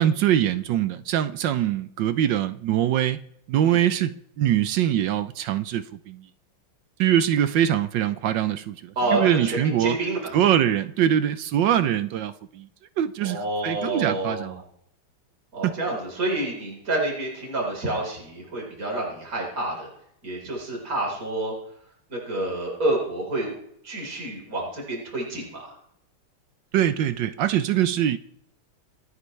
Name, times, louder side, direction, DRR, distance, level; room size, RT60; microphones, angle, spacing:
voice 1, 0.0-3.2 3.5-6.2 7.0-10.0 10.3-12.7 13.0-14.6 15.6-15.7 26.7-28.2, right 10 dB, 70° right, 1.2 m, -23 dB
voice 2, 9.0-10.3 13.2-14.5 15.5-19.9 20.2-21.5 22.1-23.5 23.8-25.7, right 2 dB, 40° right, 4.5 m, -28 dB
26.0 x 9.8 x 3.2 m
omnidirectional pair, 2.4 m